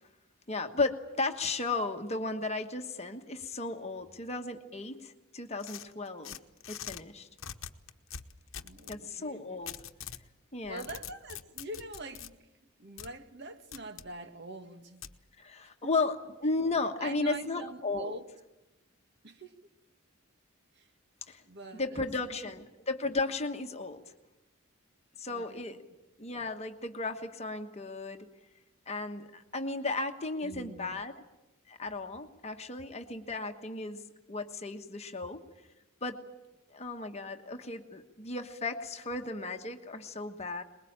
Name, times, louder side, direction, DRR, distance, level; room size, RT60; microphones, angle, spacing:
voice 1, 0.5-6.3 6.7-7.3 8.9-9.8 10.5-10.9 15.4-18.2 21.3-21.4 21.7-24.0 25.2-25.8 26.2-28.3 28.9-31.2 31.7-34.0 34.3-35.4 36.0-36.2 36.7-40.6, left 3 dB, 30° left, 1.2 m, -35 dB
sound 1, 5.6-7.0 7.4-9.0 9.7-10.2 10.6-12.3 13.0-13.1 13.7-14.1 15.0-15.2, left 9 dB, 65° left, 1.1 m, -43 dB
voice 2, 8.6-9.6 10.6-12.4 12.8-15.0 15.8-15.9 17.0-18.3 19.2-19.5 20.7-20.9 21.4-22.4 25.3-25.8 30.4-30.9, right 2 dB, 55° right, 1.7 m, -44 dB
23.5 x 21.5 x 8.8 m
head